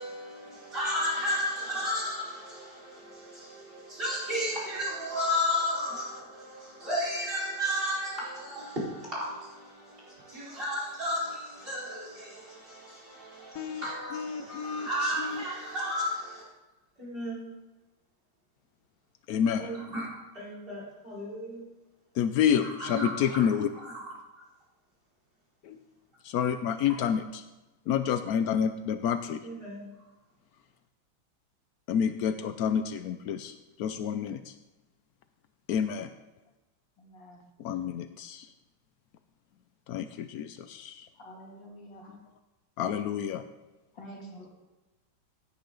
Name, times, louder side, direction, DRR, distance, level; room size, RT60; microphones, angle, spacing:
voice 1, 0.0-16.4 17.0-17.5 19.6-21.6 22.5-23.4 23.8-24.0 29.4-29.9, left 1 dB, 25° right, -6 dB, 4.6 m, -33 dB
voice 2, 14.1-14.9 15.2-15.4 19.3-19.7 22.1-23.7 25.6-25.8 26.2-27.4 27.9-29.4 31.9-34.5 35.7-36.1 37.6-38.5 39.9-41.1 42.1-42.2 42.8-43.4, left 8 dB, 85° left, 10 dB, 0.8 m, -29 dB
voice 3, 37.0-37.4 41.1-42.1 43.9-44.5, right 1 dB, 60° left, -3 dB, 3.5 m, -47 dB
16.5 x 9.7 x 3.9 m, 1.1 s
omnidirectional pair, 2.3 m